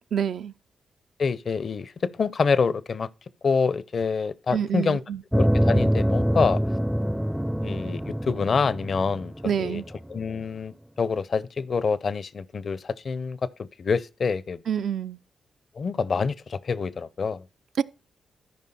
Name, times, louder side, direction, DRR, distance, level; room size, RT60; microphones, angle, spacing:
voice 1, 0.1-0.5 4.5-5.2 9.4-9.9 14.7-15.2 17.8-17.9, right 8 dB, 70° right, 0.4 m, -27 dB
voice 2, 1.2-3.1 3.4-5.0 5.3-6.6 7.6-9.8 10.1-14.6 15.8-17.4, left 5 dB, 60° left, 0.5 m, -26 dB
sound 1, 5.3-10.2, equal, 5° right, 0.4 m, -25 dB
13.5 x 5.2 x 4.2 m
supercardioid pair, 45°, 0 cm